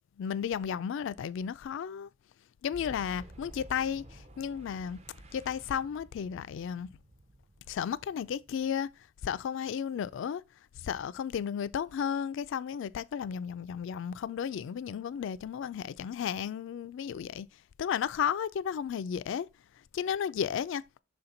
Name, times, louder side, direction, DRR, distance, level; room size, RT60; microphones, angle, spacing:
voice 1, 0.2-2.1 2.6-5.0 5.3-6.9 7.7-8.9 9.2-10.4 10.8-17.5 17.8-19.5 19.9-20.8, left 8 dB, 65° left, 0.3 m, -33 dB
Boom, 2.7-9.3, right 1 dB, 30° right, 0.6 m, -52 dB
6.2 x 4.3 x 3.8 m
head